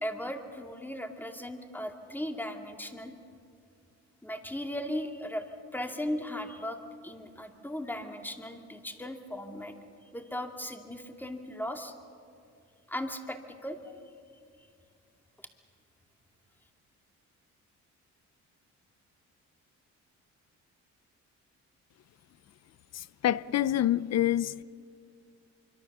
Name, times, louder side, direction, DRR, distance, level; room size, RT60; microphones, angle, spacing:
voice 1, 0.0-3.1 4.2-5.4 5.7-6.8 7.0-9.7 10.1-11.9 12.9-13.8, left 1 dB, 5° left, 2.4 m, -37 dB
voice 2, 22.9-24.6, left 12 dB, 60° left, 0.7 m, -27 dB
25.5 x 24.5 x 6.7 m
cardioid pair, 90°, 30 cm